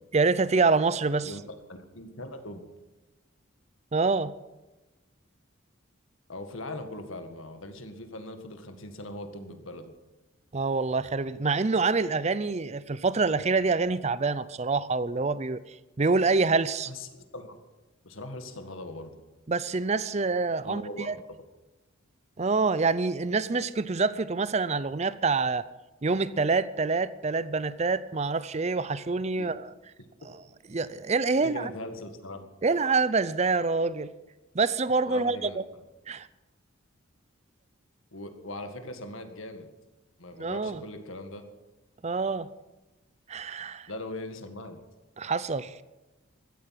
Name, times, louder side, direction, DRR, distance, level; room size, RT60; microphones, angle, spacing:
voice 1, 0.1-1.3 3.9-4.3 10.5-15.6 16.0-16.9 19.5-21.1 22.4-25.6 26.0-29.7 30.7-31.7 32.6-34.1 34.5-35.6 36.1-36.3 40.4-40.8 42.0-42.5 43.3-43.9 45.2-45.7, right 4 dB, 30° right, 16 dB, 0.5 m, -26 dB
voice 2, 1.7-2.6 6.3-9.9 16.9-17.6 18.0-19.1 20.6-21.4 29.4-29.5 31.4-32.4 35.1-35.6 38.1-39.7 40.2-41.4 43.9-44.8, left 1 dB, 75° left, 7 dB, 1.9 m, -40 dB
15.5 x 13.0 x 6.0 m, 1.1 s
head